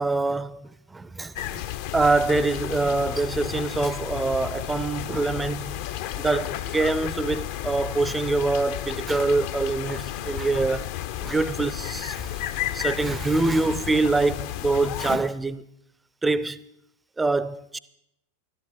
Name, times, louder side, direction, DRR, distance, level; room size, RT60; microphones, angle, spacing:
voice 1, 0.0-1.6 1.9-5.8 6.2-10.9 11.2-12.4 12.7-15.6 16.2-16.6 17.2-17.8, right 3 dB, 10° right, 0.5 m, -25 dB
sound 1, 1.4-15.2, left 12 dB, 50° left, 0.6 m, -32 dB
12.5 x 12.0 x 5.7 m
figure-of-eight pair, 90°, 0 cm